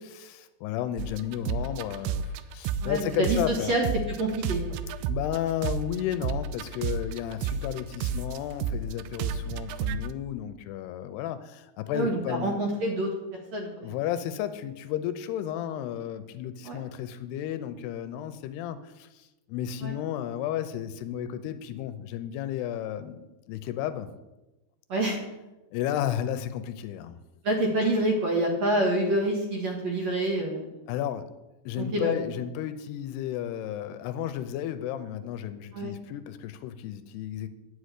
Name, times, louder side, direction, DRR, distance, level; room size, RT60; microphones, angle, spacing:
voice 1, 0.1-3.8 5.1-12.5 13.8-24.1 25.7-27.2 30.9-31.3 31.7-37.5, left 11 dB, 85° left, 11 dB, 2.6 m, -33 dB
sound 1, 1.0-3.6 3.8-10.1, right 7 dB, 85° right, 2.6 m, -31 dB
voice 2, 2.8-3.9 4.2-4.8 11.9-13.1 13.5-14.0 16.6-16.8 19.8-19.9 24.9-25.2 27.4-30.8 31.8-32.2 35.7-35.9, right 1 dB, 55° right, 0 dB, 2.2 m, -27 dB
10.0 x 6.4 x 8.2 m, 1.0 s
omnidirectional pair, 4.8 m